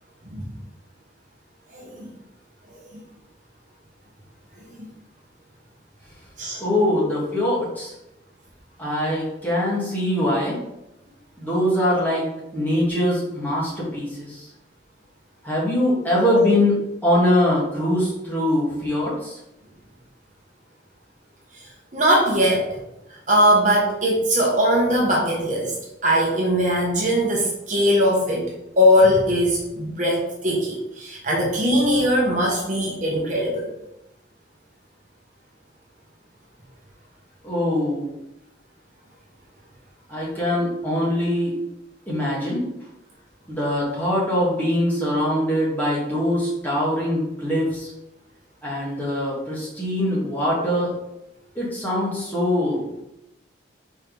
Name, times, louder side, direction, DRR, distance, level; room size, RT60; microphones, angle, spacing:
voice 1, 1.7-2.1 4.8-4.9 6.4-6.9 21.5-21.6 21.9-22.7 23.3-25.7 26.0-28.5 28.8-33.7, equal, 40° right, -3 dB, 1.2 m, -20 dB
voice 2, 6.6-7.9 8.8-10.6 11.4-12.3 12.5-14.5 15.4-16.7 17.0-19.4 37.4-38.1 40.1-41.6 42.1-42.7 43.5-47.9 48.6-50.9 51.6-52.9, left 1 dB, 10° left, -6 dB, 1.9 m, -22 dB
4.5 x 4.2 x 5.2 m, 0.89 s
head